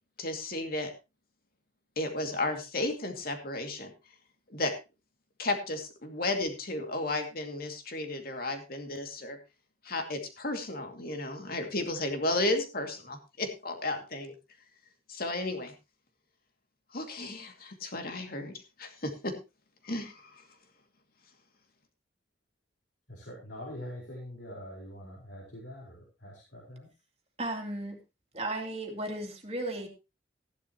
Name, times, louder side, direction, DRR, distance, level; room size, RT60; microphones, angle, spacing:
voice 1, 0.2-0.9 2.0-3.9 4.5-4.7 5.4-9.4 9.8-14.3 15.1-15.7 16.9-19.4 19.8-20.4, left 2 dB, 55° left, 5 dB, 2.4 m, -33 dB
voice 2, 23.1-26.9, left 1 dB, 85° left, -3 dB, 4.6 m, -44 dB
voice 3, 27.4-28.0 28.3-29.9, right 1 dB, 35° right, 3 dB, 2.5 m, -35 dB
15.0 x 11.0 x 3.0 m, 0.28 s
head